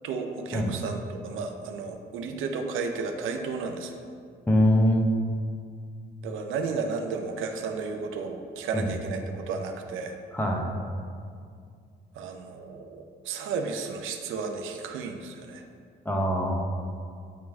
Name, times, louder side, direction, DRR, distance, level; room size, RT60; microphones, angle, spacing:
voice 1, 0.0-4.0 6.2-10.2 12.1-15.6, right 4 dB, 85° right, 5 dB, 0.6 m, -33 dB
voice 2, 4.5-5.1 8.7-8.9 10.3-10.7 16.0-16.5, equal, 10° left, -1 dB, 1.0 m, -23 dB
9.1 x 3.1 x 3.5 m, 2.2 s
cardioid pair, 90°, 20 cm